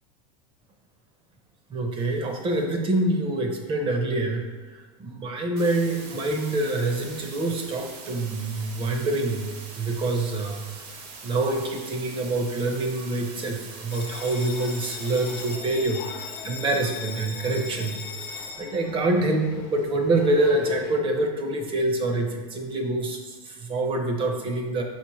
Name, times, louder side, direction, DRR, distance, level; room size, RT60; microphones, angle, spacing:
voice 1, 1.7-4.4 4.7-16.0 16.4-24.8, right 2 dB, 25° right, 3 dB, 0.6 m, -26 dB
sound 1, 5.6-15.6, right 4 dB, 55° right, 0.9 m, -42 dB
Bell, 13.9-20.9, left 5 dB, 60° left, 0.7 m, -39 dB
4.2 x 4.1 x 3.0 m, 1.4 s
supercardioid pair, 130°, 19 cm